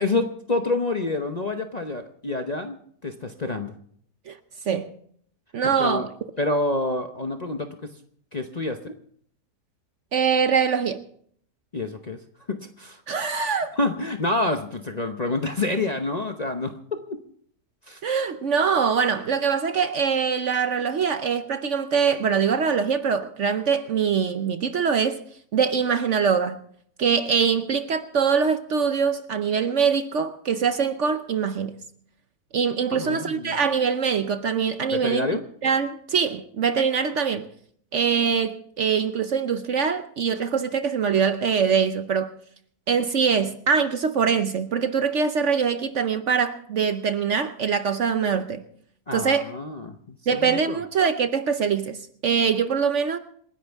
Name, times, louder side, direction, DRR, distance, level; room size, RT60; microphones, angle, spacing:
voice 1, 0.0-3.7 5.8-6.1 6.4-7.9 8.3-9.0 11.7-12.2 12.5-13.0 13.8-17.2 17.9-18.0 32.9-33.6 34.9-35.4 49.1-50.8, left 2 dB, 35° left, 0.8 m, -28 dB
voice 2, 5.5-6.0 10.1-11.0 13.1-13.7 18.0-25.2 25.5-26.6 27.0-31.8 32.5-35.3 35.6-37.5 37.9-42.3 42.9-48.6 49.1-49.4 50.3-53.2, right 6 dB, 55° right, 0.9 m, -23 dB
27.5 x 11.0 x 3.5 m
omnidirectional pair, 1.7 m